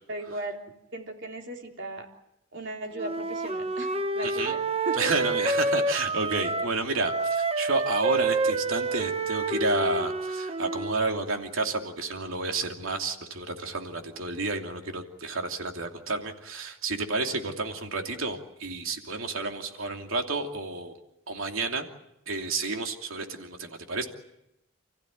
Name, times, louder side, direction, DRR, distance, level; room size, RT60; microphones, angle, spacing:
voice 1, 0.1-2.1 2.5-4.6 4.9-5.3, right 2 dB, 55° right, 2 dB, 3.7 m, -37 dB
Wind instrument woodwind instrument, 2.9-6.8 7.0-11.0, right 3 dB, 30° right, 1.0 m, -28 dB
voice 2, 4.2-4.5 5.0-21.0 21.3-21.9 22.3-24.1, right 3 dB, 75° right, 3 dB, 2.8 m, -30 dB
29.5 x 15.5 x 9.4 m, 0.86 s
head